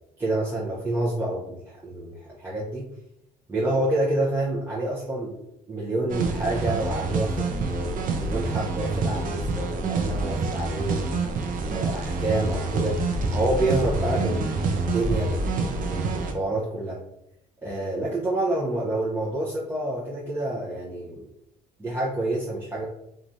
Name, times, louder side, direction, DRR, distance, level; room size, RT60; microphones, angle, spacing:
voice 1, 0.2-2.9 3.5-5.3 5.7-11.1 11.7-13.0 13.3-17.0 17.6-21.3 21.8-22.9, right 2 dB, 15° right, -7 dB, 0.6 m, -28 dB
sound 1, 6.1-16.3, right 3 dB, 55° right, 0.5 m, -27 dB
3.1 x 2.4 x 2.6 m, 0.81 s
cardioid pair, 110°, 17 cm